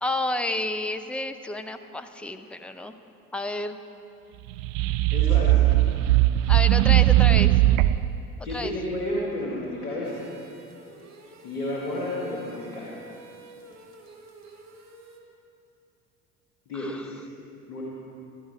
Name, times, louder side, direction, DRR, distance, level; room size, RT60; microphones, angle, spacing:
voice 1, 0.0-3.0 3.3-3.8 6.5-7.5 8.5-8.7 16.7-17.1, left 2 dB, 5° left, 8 dB, 0.5 m, -30 dB
sound 1, 4.5-8.2, right 15 dB, 60° right, 0.5 m, -19 dB
voice 2, 5.1-5.7 8.4-10.3 11.4-12.9 16.7-17.2 17.7-17.8, left 1 dB, 75° left, -4 dB, 2.1 m, -31 dB
sound 2, 10.0-15.2, right 2 dB, 35° right, 1.8 m, -49 dB
16.0 x 12.5 x 4.6 m, 2.7 s
figure-of-eight pair, 65°, 45 cm